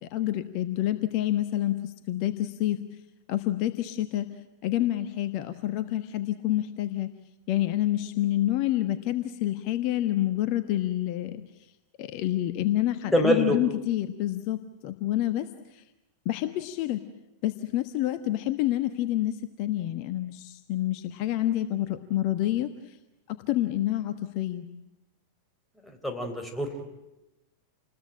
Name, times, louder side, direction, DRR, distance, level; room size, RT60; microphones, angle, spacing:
voice 1, 0.0-2.8 3.3-4.3 4.6-7.1 7.5-11.4 12.0-15.8 16.2-17.0 17.4-23.0 23.3-24.7, left 14 dB, 45° left, 11 dB, 1.2 m, -28 dB
voice 2, 13.1-13.6 25.8-26.8, equal, 5° left, 5 dB, 4.0 m, -25 dB
28.5 x 21.0 x 8.8 m, 0.93 s
figure-of-eight pair, 90°, 0 cm